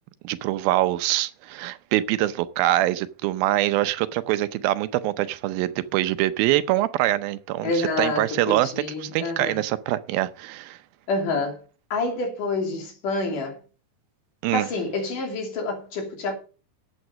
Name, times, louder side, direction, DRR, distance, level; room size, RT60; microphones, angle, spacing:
voice 1, 0.2-8.7 9.0-10.8 14.4-14.7, right 15 dB, 85° right, 2.6 m, -24 dB
voice 2, 7.6-9.6 11.1-11.6 11.9-13.6 14.5-16.4, left 3 dB, 65° left, 4.4 m, -27 dB
11.0 x 8.2 x 6.5 m
omnidirectional pair, 4.2 m